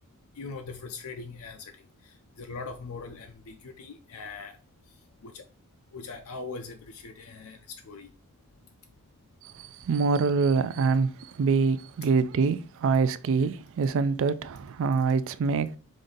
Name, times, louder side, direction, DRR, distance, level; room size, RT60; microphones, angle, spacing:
voice 1, 0.4-1.7 2.0-4.6 5.2-5.4 5.9-8.1, left 4 dB, 70° left, 0.5 m, -41 dB
voice 2, 9.4-15.7, right 4 dB, 60° right, 0.4 m, -25 dB
5.2 x 2.6 x 3.8 m
head